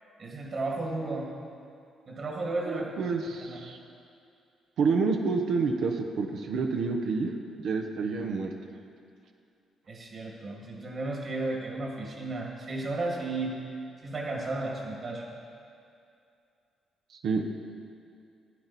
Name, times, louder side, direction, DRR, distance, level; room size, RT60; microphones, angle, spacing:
voice 1, 0.2-1.3 2.1-3.6 9.9-13.6 14.0-15.2, right 2 dB, 50° right, -1 dB, 2.0 m, -34 dB
voice 2, 2.7-3.8 4.8-8.5 17.1-17.4, right 4 dB, 70° right, 3 dB, 0.9 m, -28 dB
16.0 x 9.0 x 4.2 m, 2.5 s
cardioid pair, 90°, 0 cm